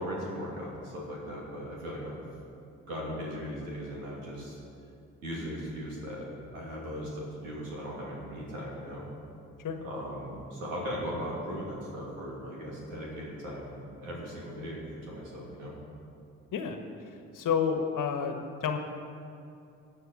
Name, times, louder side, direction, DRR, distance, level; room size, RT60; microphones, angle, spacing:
voice 1, 0.0-2.2 2.9-4.6 5.2-9.0 9.8-15.7, equal, 85° right, -4 dB, 2.8 m, -38 dB
voice 2, 17.3-18.8, left 7 dB, 55° left, 6 dB, 1.4 m, -29 dB
21.5 x 7.7 x 4.2 m, 2.6 s
hypercardioid pair, 45°, 38 cm